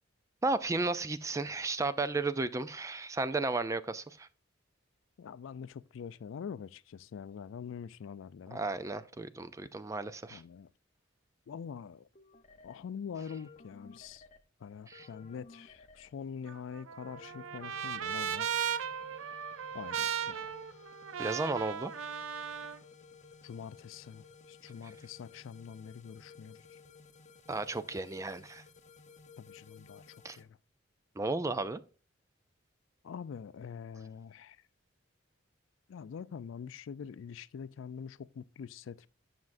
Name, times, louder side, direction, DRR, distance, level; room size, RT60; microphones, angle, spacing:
voice 1, 0.4-4.3 8.5-10.4 14.9-15.1 21.2-21.9 27.5-28.6 30.2-30.4 31.2-31.8, right 3 dB, 15° right, 0.3 m, -34 dB
voice 2, 5.2-8.6 10.3-10.7 11.5-12.1 12.6-14.2 14.6-18.5 19.7-20.5 23.4-26.8 29.4-30.6 33.0-34.6 35.9-39.1, left 7 dB, 70° left, 0.3 m, -45 dB
sound 1, 12.1-12.8 13.2-14.4 14.9-16.1 17.0-30.4, left 5 dB, 35° left, 0.7 m, -56 dB
Trumpet, 16.5-22.8, right 8 dB, 75° right, 0.5 m, -37 dB
9.6 x 5.9 x 2.5 m
head